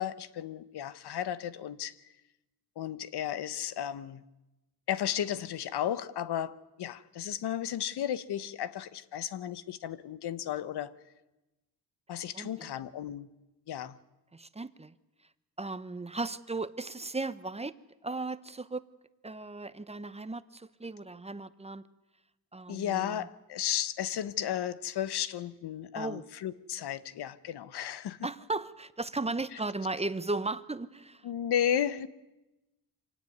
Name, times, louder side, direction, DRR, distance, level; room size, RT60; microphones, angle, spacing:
voice 1, 0.0-1.9 2.8-4.2 4.9-10.9 12.1-13.3 13.7-14.0 22.7-28.2 31.2-32.1, left 10 dB, 85° left, 1.1 m, -34 dB
voice 2, 12.3-12.7 14.3-14.9 15.6-17.8 18.0-18.8 19.2-21.8 22.5-23.3 25.9-26.3 28.2-31.3, right 3 dB, 15° right, 0.8 m, -36 dB
25.5 x 17.0 x 9.5 m
wide cardioid pair, 120°, 39 cm